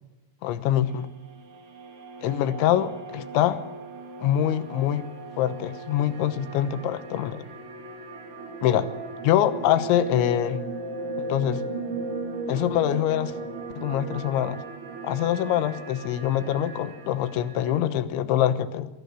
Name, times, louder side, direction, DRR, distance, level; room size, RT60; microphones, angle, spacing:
voice 1, 0.4-1.1 2.2-3.6 4.2-5.1 5.4-7.5 8.6-8.9 9.2-10.6 11.3-11.6 12.5-13.4 13.8-14.6 15.0-18.9, left 11 dB, 85° left, 12 dB, 3.5 m, -24 dB
sound 1, 0.9-17.8, right 3 dB, 75° right, 5.1 m, -37 dB
23.5 x 18.0 x 8.3 m, 1.1 s
omnidirectional pair, 5.2 m